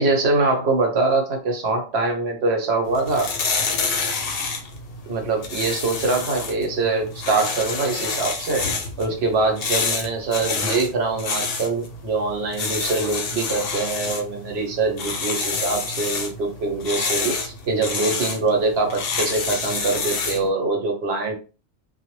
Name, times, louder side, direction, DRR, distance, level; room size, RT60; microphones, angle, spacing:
voice 1, 0.0-3.3 5.1-8.7 9.0-21.3, right 3 dB, 70° right, 2 dB, 0.9 m, -23 dB
sound 1, 2.9-20.5, left 4 dB, 65° left, 0.7 m, -28 dB
2.1 x 2.0 x 3.0 m, 0.34 s
omnidirectional pair, 1.2 m